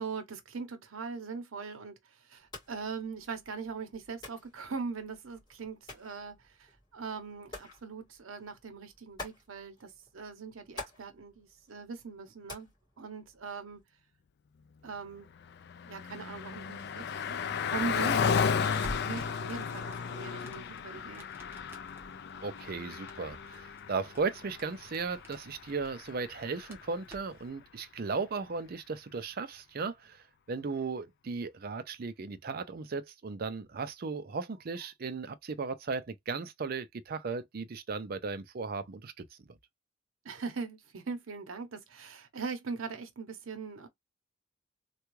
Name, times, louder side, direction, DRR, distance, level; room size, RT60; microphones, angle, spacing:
voice 1, 0.0-12.7 13.0-13.8 14.8-15.3 15.8-21.3 40.2-43.9, right 5 dB, 80° right, 0.8 m, -41 dB
sound 1, 2.4-13.8, left 2 dB, 20° left, 2.1 m, -51 dB
Car passing by, 15.2-27.0, left 6 dB, 55° left, 0.3 m, -34 dB
Crackle, 18.5-27.5, equal, 10° right, 0.9 m, -51 dB
voice 2, 22.4-39.1, right 4 dB, 45° right, 0.5 m, -36 dB
3.4 x 2.3 x 3.0 m
head